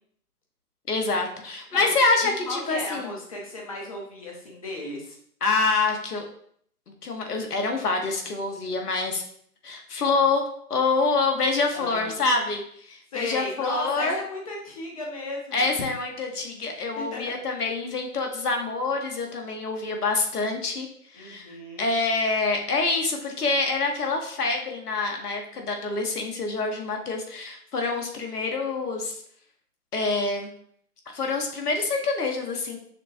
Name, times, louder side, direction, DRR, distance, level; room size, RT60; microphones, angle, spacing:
voice 1, 0.9-3.1 5.4-6.2 7.0-9.2 9.6-10.4 10.7-14.2 15.5-29.1 29.9-30.5 31.1-32.8, left 3 dB, 75° left, 3 dB, 1.1 m, -26 dB
voice 2, 2.2-5.2 11.7-12.3 13.1-15.7 17.0-17.2 21.2-21.9, left 2 dB, 25° left, 0 dB, 0.6 m, -35 dB
6.3 x 2.1 x 2.6 m, 0.64 s
hypercardioid pair, 145°, 46 cm